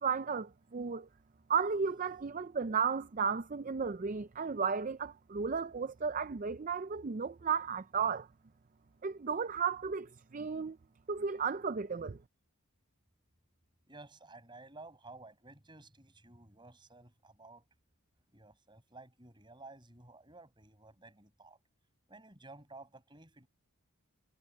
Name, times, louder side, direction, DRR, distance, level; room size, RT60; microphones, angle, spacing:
voice 1, 0.0-1.1 1.5-8.3 9.0-10.8 11.1-12.2, right 6 dB, 35° right, 0.4 m, -34 dB
voice 2, 13.9-17.6 18.3-21.6 22.1-23.5, right 2 dB, 20° right, 5.7 m, -54 dB
head